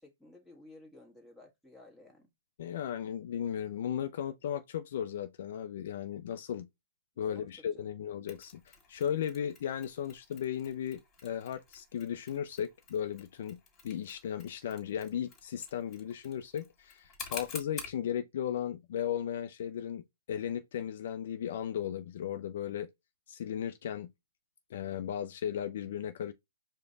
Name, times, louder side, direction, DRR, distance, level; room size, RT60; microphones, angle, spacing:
voice 1, 0.0-2.3 7.3-7.9, left 2 dB, ahead, 1.4 m, -55 dB
voice 2, 2.6-6.7 7.2-13.6 13.8-22.9 23.3-24.1 24.7-26.3, left 9 dB, 55° left, 0.4 m, -36 dB
Mechanisms, 8.3-18.0, left 5 dB, 20° left, 1.8 m, -49 dB
4.9 x 2.1 x 3.8 m
figure-of-eight pair, 125°, 0 cm